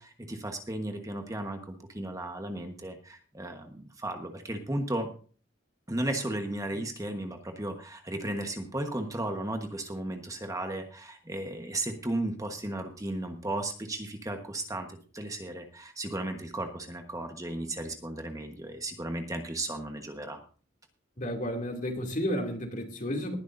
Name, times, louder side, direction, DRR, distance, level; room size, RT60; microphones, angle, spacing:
voice 1, 0.0-5.1 5.9-20.4, right 1 dB, 15° right, 1.3 m, -35 dB
voice 2, 21.2-23.4, equal, 40° left, 2.7 m, -32 dB
19.5 x 11.0 x 2.6 m
head